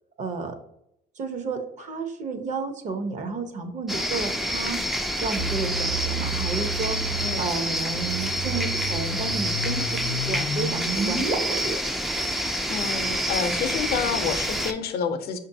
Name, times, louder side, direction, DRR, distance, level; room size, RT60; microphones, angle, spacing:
voice 1, 0.2-0.6 1.2-4.8 5.2-7.0 7.4-11.8, right 4 dB, 45° right, 6 dB, 0.7 m, -32 dB
sound 1, 3.9-14.7, equal, ahead, 0.3 m, -28 dB
sound 2, 5.4-11.3, right 2 dB, 70° right, 1.4 m, -31 dB
voice 2, 12.7-15.4, left 6 dB, 70° left, 7 dB, 0.6 m, -28 dB
5.9 x 2.6 x 2.6 m, 0.79 s
cardioid pair, 110°, 17 cm